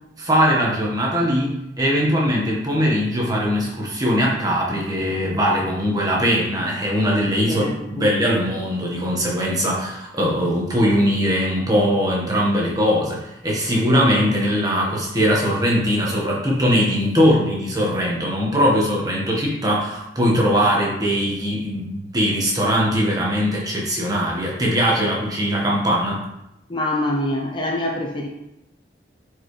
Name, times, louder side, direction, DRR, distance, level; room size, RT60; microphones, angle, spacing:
voice 1, 0.2-26.2, equal, 20° right, -4 dB, 1.6 m, -20 dB
voice 2, 7.5-8.1 26.7-28.3, left 1 dB, 25° left, 0 dB, 0.7 m, -25 dB
8.9 x 4.9 x 3.3 m, 0.87 s
head